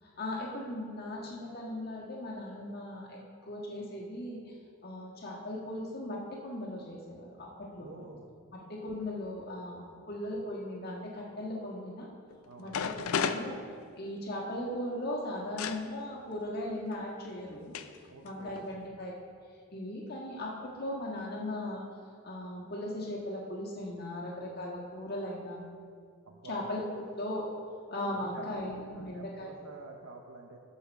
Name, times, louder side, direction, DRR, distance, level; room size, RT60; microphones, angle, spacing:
voice 1, 0.0-4.4 4.8-8.0 8.5-12.1 12.6-13.5 14.0-17.7 18.2-19.1 19.7-21.8 22.2-25.7 26.5-27.5 27.9-29.5, left 1 dB, 45° left, -3 dB, 1.6 m, -38 dB
voice 2, 7.8-8.3 12.5-12.7 18.1-18.6 26.3-26.6 28.0-28.6 28.9-30.6, right 3 dB, 85° right, 2 dB, 0.7 m, -48 dB
sound 1, 12.3-12.4 12.7-14.3 15.6-15.8 16.9-17.0 17.7-18.0 18.3-18.7, left 6 dB, 85° left, 0.4 m, -33 dB
13.0 x 5.6 x 4.5 m, 2.2 s
head